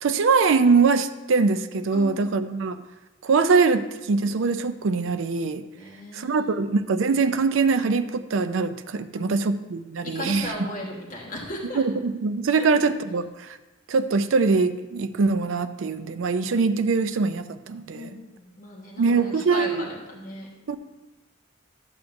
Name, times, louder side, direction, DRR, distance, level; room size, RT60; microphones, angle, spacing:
voice 1, 0.0-2.8 3.2-5.6 6.1-10.6 11.7-13.6 13.9-18.2 19.0-19.9 20.7-20.8, right 4 dB, 75° right, 10 dB, 0.5 m, -23 dB
voice 2, 1.9-2.4 5.8-6.5 9.1-9.5 10.0-11.8 12.6-12.7 17.9-20.5, left 1 dB, 45° left, -4 dB, 1.2 m, -37 dB
12.5 x 7.1 x 2.6 m, 1.1 s
head